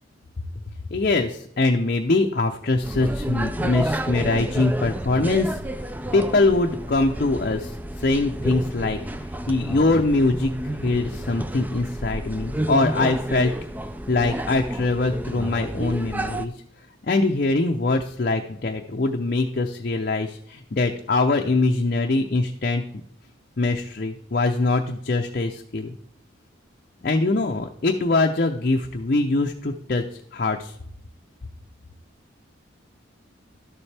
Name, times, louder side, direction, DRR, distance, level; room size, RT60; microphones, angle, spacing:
voice 1, 0.9-9.0 9.2-13.5 14.1-16.5 17.1-22.8 23.6-25.9 27.0-30.0 30.3-30.8, left 2 dB, 45° left, 3 dB, 0.5 m, -23 dB
sound 1, 2.8-16.5, right 1 dB, 10° right, 0.3 m, -30 dB
12.0 x 7.1 x 3.3 m, 0.68 s
head